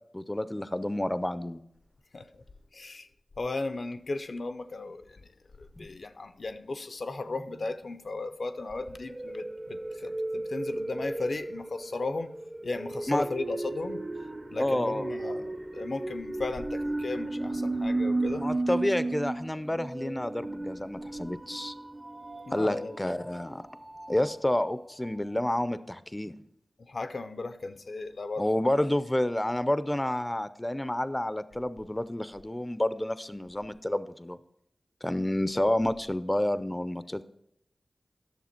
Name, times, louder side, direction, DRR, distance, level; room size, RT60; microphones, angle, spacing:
voice 1, 0.1-1.6 5.8-5.9 13.1-13.3 14.6-15.1 18.3-21.7 22.5-23.6 24.1-26.3 28.4-34.4 35.0-37.2, left 1 dB, 20° left, 0.4 m, -29 dB
voice 2, 2.7-3.1 3.4-5.2 5.6-12.3 12.6-14.0 14.5-18.5 19.7-19.8 22.5-22.9 26.8-28.5, left 3 dB, 70° left, 0.5 m, -36 dB
sound 1, 7.3-7.5 8.6-24.6 25.1-25.2 25.3-25.4, right 2 dB, 30° right, 0.6 m, -35 dB
11.0 x 6.7 x 4.4 m
wide cardioid pair, 55°, 0 cm